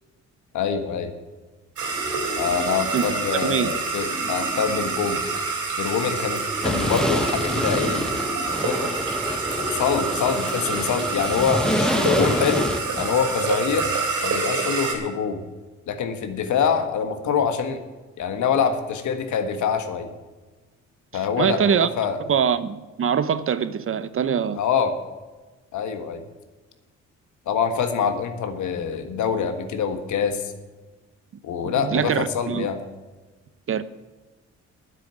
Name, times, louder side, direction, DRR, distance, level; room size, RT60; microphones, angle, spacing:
voice 1, 0.5-1.1 2.4-5.2 5.8-8.1 8.6-8.9 9.6-12.7 12.9-13.9 14.2-15.4 15.9-17.8 18.2-20.1 21.1-22.2 24.6-25.0 25.7-26.2 27.4-30.5 31.4-32.8, left 6 dB, 75° left, 1.6 m, -25 dB
sound 1, 1.8-14.9, right 4 dB, 80° right, 3.6 m, -27 dB
voice 2, 3.4-3.8 21.4-21.9 22.2-24.6 31.6-32.7 33.7-33.8, right 7 dB, 45° right, 0.7 m, -23 dB
sound 2, 6.6-13.1, equal, ahead, 1.1 m, -27 dB
9.9 x 7.7 x 8.8 m
cardioid pair, 90°, 30 cm